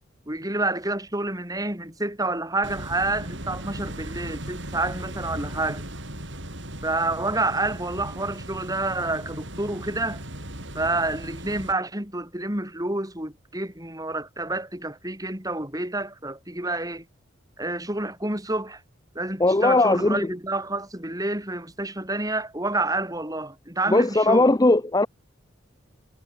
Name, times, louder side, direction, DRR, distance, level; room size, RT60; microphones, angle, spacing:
voice 1, 0.3-5.8 6.8-10.2 10.7-17.0 17.6-18.8 19.2-24.5, right 2 dB, 20° right, 5.4 m, -28 dB
sound 1, 2.6-11.7, right 1 dB, 60° right, 7.8 m, -37 dB
voice 2, 19.4-20.2 23.9-25.1, left 2 dB, 20° left, 0.6 m, -19 dB
head